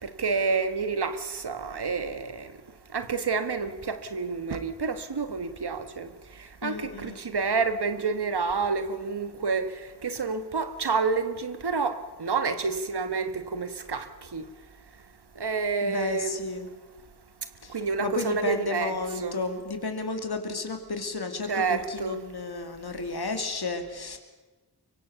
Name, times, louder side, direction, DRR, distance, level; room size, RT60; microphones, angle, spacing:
voice 1, 0.0-2.5 2.9-6.1 6.6-9.7 10.0-14.4 15.4-16.3 17.7-19.4 21.5-22.2, right 4 dB, 80° right, 1.5 m, -29 dB
voice 2, 6.6-7.2 15.8-16.7 17.6-24.2, left 3 dB, 75° left, 2.8 m, -33 dB
24.0 x 24.0 x 7.0 m
wide cardioid pair, 60°, 39 cm